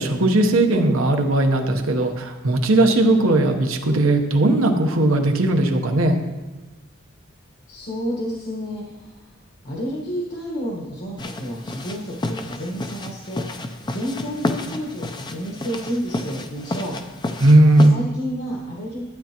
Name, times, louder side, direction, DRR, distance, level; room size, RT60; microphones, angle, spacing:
voice 1, 0.0-6.2 17.4-18.0, right 1 dB, 80° right, 4 dB, 1.0 m, -17 dB
voice 2, 7.7-9.3 9.6-13.4 13.9-17.0 17.8-19.0, equal, 55° left, -3 dB, 1.4 m, -30 dB
sound 1, 11.2-17.9, left 2 dB, 20° left, 0.5 m, -31 dB
11.5 x 9.2 x 3.0 m, 1.2 s
head